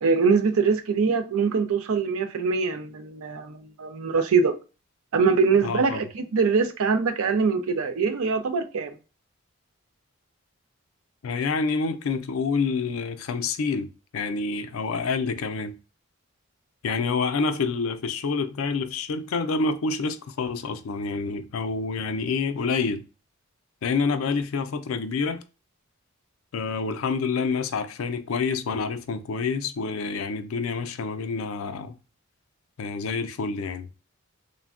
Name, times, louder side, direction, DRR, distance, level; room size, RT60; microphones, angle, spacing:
voice 1, 0.0-4.5 5.1-9.0, right 5 dB, 85° right, 0.5 m, -23 dB
voice 2, 5.6-6.0 11.2-15.8 16.8-23.0 23.8-25.4 26.5-32.0 32.8-33.9, left 4 dB, 75° left, 0.4 m, -27 dB
3.4 x 2.1 x 2.4 m
head